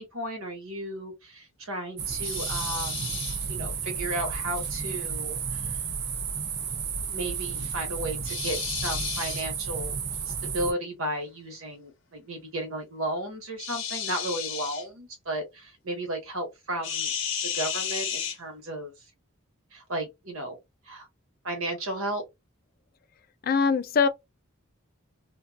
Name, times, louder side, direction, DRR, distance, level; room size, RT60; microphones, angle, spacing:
voice 1, 0.0-3.2 3.5-5.8 7.1-10.0 10.3-17.1 17.4-18.9 19.7-20.6 20.9-21.1 21.4-22.2, right 1 dB, 90° right, 1.2 m, -34 dB
sound 1, 2.0-10.7, right 6 dB, 50° right, 0.5 m, -32 dB
sound 2, 2.2-3.4 8.2-9.5 13.6-14.8 16.8-18.4, left 8 dB, 75° left, 0.7 m, -33 dB
voice 2, 23.4-24.1, left 5 dB, 45° left, 0.3 m, -22 dB
2.5 x 2.3 x 2.3 m
head